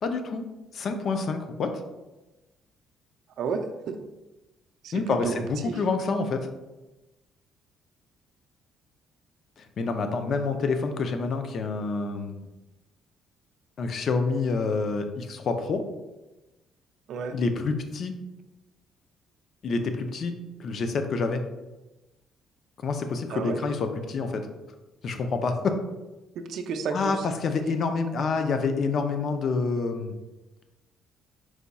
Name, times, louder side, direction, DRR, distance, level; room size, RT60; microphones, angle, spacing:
voice 1, 0.0-0.4 0.7-1.8 4.9-6.5 9.6-12.5 13.8-15.8 17.3-18.2 19.6-20.3 20.6-21.4 22.8-24.5 25.0-25.7 26.9-30.1, left 4 dB, 45° left, 6 dB, 0.5 m, -27 dB
voice 2, 3.4-4.0 4.8-5.7 17.1-17.4 23.3-23.6 26.5-27.1, right 5 dB, 65° right, 6 dB, 0.4 m, -31 dB
4.7 x 2.3 x 4.0 m, 1.0 s
cardioid pair, 150°, 0 cm